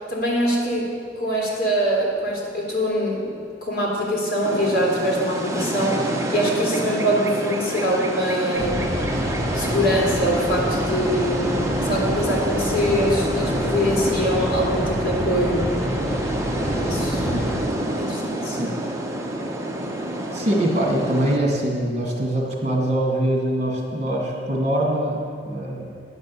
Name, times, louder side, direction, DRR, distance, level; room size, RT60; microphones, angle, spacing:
voice 1, 0.1-0.8 1.2-8.8 9.5-11.4 11.8-15.6 16.8-17.3 18.0-18.6, equal, 55° left, -4 dB, 2.8 m, -23 dB
sound 1, 4.4-21.4, right 1 dB, 15° right, 0.8 m, -27 dB
sound 2, 8.6-17.7, equal, 5° left, 1.0 m, -28 dB
voice 2, 20.3-25.2 25.5-26.0, right 1 dB, 40° right, -1 dB, 2.2 m, -23 dB
9.8 x 5.4 x 8.3 m, 2.1 s
head